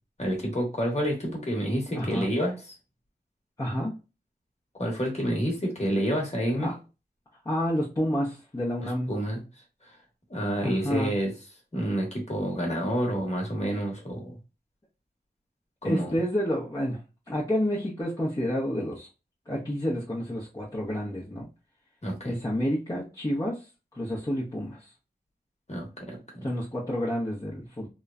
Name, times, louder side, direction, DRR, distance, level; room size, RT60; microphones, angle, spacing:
voice 1, 0.2-2.7 4.8-6.7 8.8-9.4 10.3-11.3 11.7-14.4 15.8-16.1 22.0-22.4 25.7-26.5, equal, 40° left, -1 dB, 1.2 m, -29 dB
voice 2, 1.9-2.3 3.6-4.0 6.6-6.7 7.4-9.1 10.6-11.1 15.8-17.0 17.3-19.1 19.5-21.5 22.2-23.7 23.9-24.9 26.4-27.9, equal, 20° left, -7 dB, 0.8 m, -29 dB
3.0 x 2.1 x 2.4 m, 0.29 s
wide cardioid pair, 50°, 17 cm